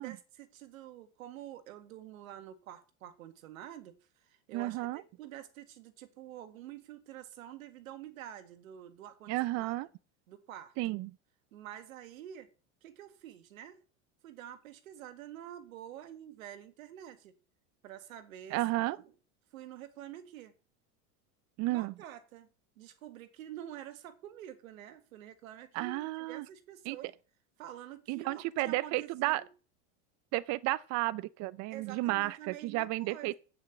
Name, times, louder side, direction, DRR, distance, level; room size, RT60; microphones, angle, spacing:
voice 1, 0.0-9.3 9.6-9.7 10.3-10.8 11.5-12.5 12.8-13.8 14.2-17.3 17.8-19.0 19.5-20.5 21.6-22.5 22.8-27.1 27.6-29.5 31.7-33.3, right 11 dB, 90° right, 1.7 m, -48 dB
voice 2, 4.5-5.0 9.3-9.9 10.8-11.1 18.5-19.0 21.6-21.9 25.7-26.5 26.9-27.0 28.1-29.4 30.3-33.3, right 18 dB, 45° right, 0.5 m, -32 dB
8.7 x 5.9 x 8.1 m
supercardioid pair, 120°, 39 cm